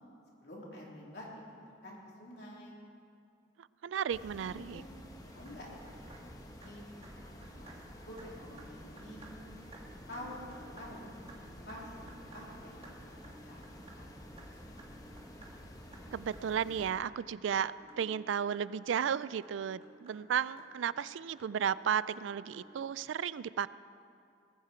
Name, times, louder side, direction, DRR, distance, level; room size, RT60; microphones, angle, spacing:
voice 1, 0.4-2.8 4.3-9.2 9.8-13.2 13.4-14.6, left 1 dB, 60° left, -4 dB, 3.7 m, -49 dB
voice 2, 3.6-4.8 16.1-23.7, right 8 dB, 80° right, 18 dB, 0.3 m, -34 dB
sound 1, 4.1-16.9, equal, 20° left, 1.1 m, -51 dB
sound 2, 5.3-22.8, right 2 dB, 30° right, 1.7 m, -57 dB
19.5 x 14.5 x 4.5 m, 2.4 s
head